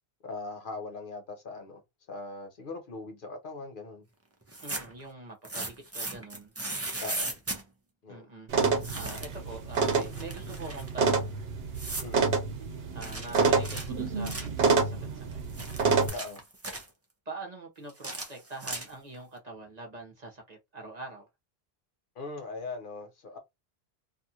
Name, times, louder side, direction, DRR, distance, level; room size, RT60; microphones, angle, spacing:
voice 1, 0.2-1.8 2.1-4.0 7.0-7.3 8.0-8.3 12.0-12.4 16.1-16.4 22.2-23.4, left 3 dB, 60° left, 0.8 m, -40 dB
sound 1, 4.4-5.0 5.4-7.6 8.8-9.4 9.7-10.9 11.7-12.1 13.0-14.6 15.3-16.9 17.9-19.1, right 2 dB, 20° right, 0.5 m, -37 dB
voice 2, 4.6-6.5 8.1-8.7 8.9-11.4 12.9-15.4 17.3-21.2, right 3 dB, 45° right, 1.0 m, -44 dB
sound 2, 8.5-16.1, right 4 dB, 75° right, 1.0 m, -28 dB
2.7 x 2.4 x 2.7 m
omnidirectional pair, 1.0 m